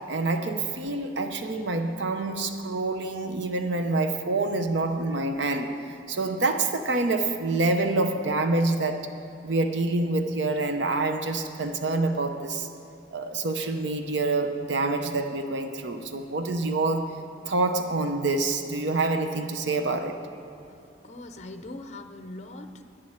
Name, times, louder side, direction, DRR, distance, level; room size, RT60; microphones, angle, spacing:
voice 1, 0.0-5.8 6.1-9.1 9.4-12.7 13.1-17.2 17.5-20.2, right 2 dB, 75° right, 6 dB, 0.7 m, -27 dB
voice 2, 20.7-22.8, left 2 dB, 35° left, 8 dB, 0.6 m, -41 dB
10.0 x 7.4 x 8.6 m, 2.7 s
head